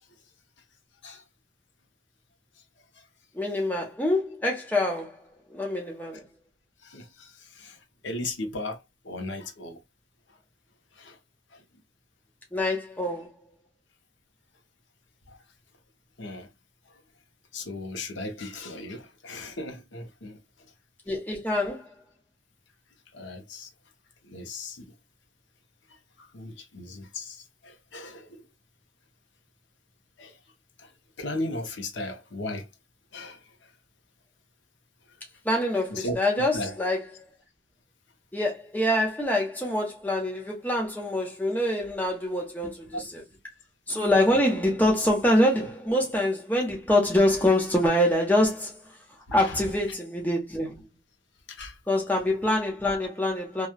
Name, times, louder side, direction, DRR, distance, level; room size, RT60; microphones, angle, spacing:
voice 1, 3.3-5.2 5.5-6.3 12.5-13.3 21.1-22.0 35.4-37.2 38.3-43.2 43.9-48.9 49.3-50.8 51.9-53.7, left 1 dB, 10° left, 0.9 m, -25 dB
voice 2, 6.8-7.8 8.0-8.8 9.0-9.8 11.0-11.2 15.3-15.4 16.2-16.5 17.5-20.4 23.1-23.7 24.3-24.9 26.3-28.4 30.2-30.3 31.2-32.7 33.1-33.4 35.9-36.2 36.5-36.7 42.9-43.0 49.3-49.5 51.5-51.7, left 2 dB, 90° left, 0.8 m, -36 dB
3.0 x 2.3 x 2.2 m
head